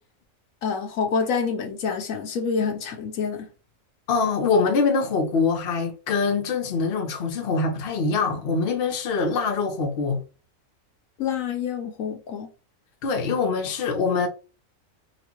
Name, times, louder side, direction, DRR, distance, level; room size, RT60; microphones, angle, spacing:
voice 1, 0.6-3.5 11.2-12.5, left 6 dB, 75° left, 1.1 m, -27 dB
voice 2, 4.1-10.2 13.0-14.3, left 4 dB, 50° left, 0.9 m, -24 dB
3.9 x 2.5 x 2.9 m
omnidirectional pair, 1.4 m